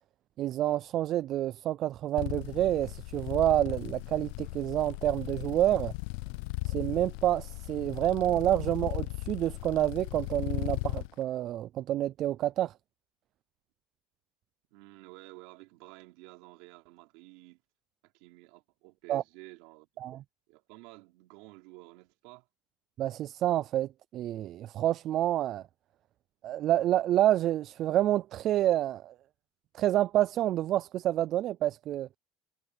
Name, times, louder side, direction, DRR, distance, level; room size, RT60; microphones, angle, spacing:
voice 1, 0.4-5.9 6.6-12.7 19.1-19.2 20.0-20.2 23.0-25.6 26.4-29.1 29.7-32.1, right 13 dB, 35° right, 0.3 m, -28 dB
sound 1, 2.2-11.1, left 26 dB, 65° left, 0.4 m, -37 dB
voice 2, 14.7-17.6 18.0-19.9 20.5-22.5, right 23 dB, 60° right, 4.7 m, -52 dB
cardioid pair, 165°, 0 cm